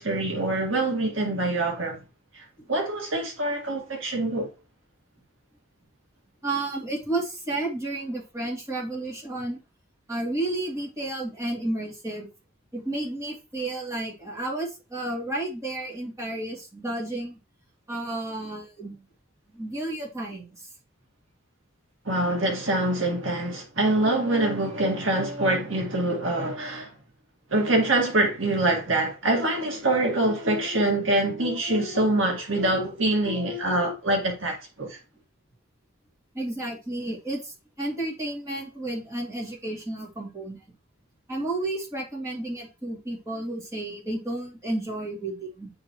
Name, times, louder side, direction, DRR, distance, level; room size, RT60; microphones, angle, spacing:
voice 1, 0.0-2.0 2.3-4.5 22.1-26.9 27.5-35.0, right 2 dB, 75° right, 1.9 m, -25 dB
voice 2, 6.4-9.6 10.1-12.3 12.7-17.4 17.9-19.1 19.5-20.7 36.3-40.6 41.3-45.7, right 2 dB, 15° right, 2.5 m, -32 dB
9.6 x 4.0 x 3.0 m
head